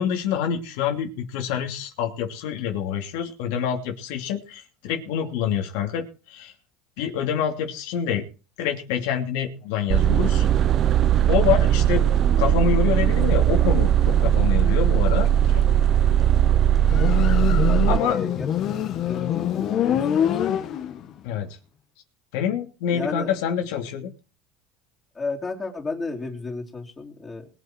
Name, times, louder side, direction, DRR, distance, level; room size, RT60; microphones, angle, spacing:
voice 1, 0.0-6.5 7.0-8.2 8.6-10.5 11.0-12.0 12.4-15.7 17.9-18.2 21.2-21.5 22.3-24.1, left 8 dB, 80° left, 3 dB, 2.7 m, -26 dB
sound 1, 9.9-18.0, right 11 dB, 40° right, 0.7 m, -19 dB
Motorcycle, 16.8-21.2, left 10 dB, 50° left, 1.7 m, -25 dB
voice 2, 17.7-20.4 22.9-23.3 25.1-27.5, left 3 dB, 15° left, 0 dB, 3.8 m, -33 dB
21.0 x 8.2 x 4.6 m, 0.34 s
supercardioid pair, 125°, 0 cm